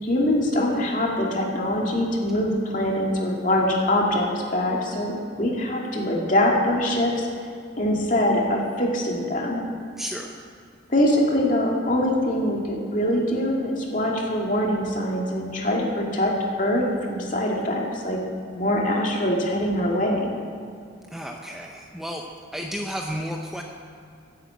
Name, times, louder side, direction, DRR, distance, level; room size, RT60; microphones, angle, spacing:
voice 1, 0.0-7.3 7.8-9.7 10.9-16.3 16.6-18.2 18.6-20.3, left 1 dB, 40° left, -1 dB, 2.3 m, -23 dB
voice 2, 10.0-10.3 21.1-22.2 22.5-23.6, equal, ahead, 1 dB, 0.6 m, -32 dB
11.0 x 10.0 x 8.1 m, 2.3 s
head